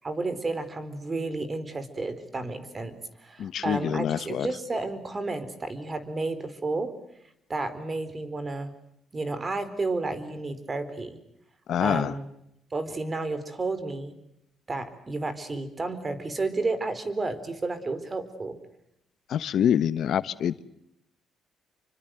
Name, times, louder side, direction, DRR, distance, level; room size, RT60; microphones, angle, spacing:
voice 1, 0.0-6.9 7.5-8.7 9.1-11.2 11.8-12.2 12.7-14.1 14.7-18.6, right 3 dB, 30° right, 13 dB, 4.4 m, -31 dB
voice 2, 3.4-4.5 11.7-12.1 19.3-20.6, left 9 dB, 70° left, 15 dB, 1.1 m, -26 dB
28.5 x 25.0 x 7.9 m, 0.80 s
cardioid pair, 90°, 0 cm